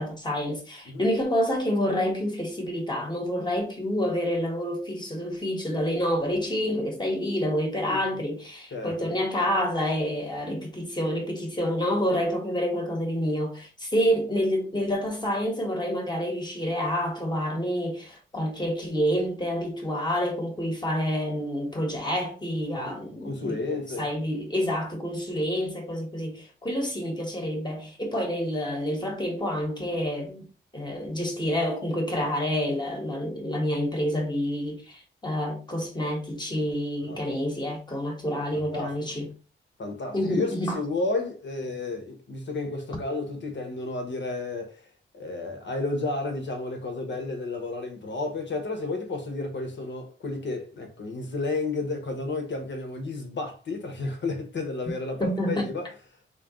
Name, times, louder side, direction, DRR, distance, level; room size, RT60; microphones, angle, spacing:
voice 1, 0.0-23.6 24.0-30.5 30.7-39.3 40.1-40.8 55.2-55.7, equal, 20° left, 1.2 m, -28 dB
voice 2, 8.7-9.1 22.8-24.1 37.1-37.2 38.3-39.2 39.8-44.8 45.1-55.9, left 3 dB, 60° left, 1.1 m, -32 dB
3.8 x 3.1 x 3.0 m
wide cardioid pair, 110°, 21 cm